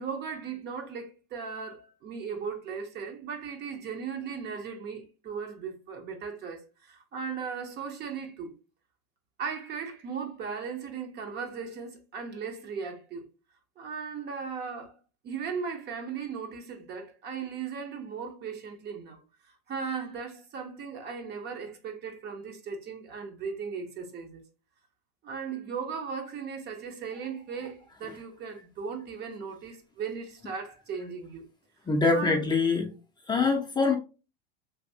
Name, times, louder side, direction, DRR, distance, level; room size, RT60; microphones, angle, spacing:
voice 1, 0.0-8.5 9.4-13.3 13.8-14.9 15.2-19.2 19.7-24.4 25.2-31.5 32.1-32.5, right 6 dB, 35° right, 0.8 m, -37 dB
voice 2, 31.9-32.9 33.3-34.0, left 4 dB, 15° left, 0.6 m, -24 dB
3.4 x 2.6 x 2.6 m
hypercardioid pair, 110°, 30 cm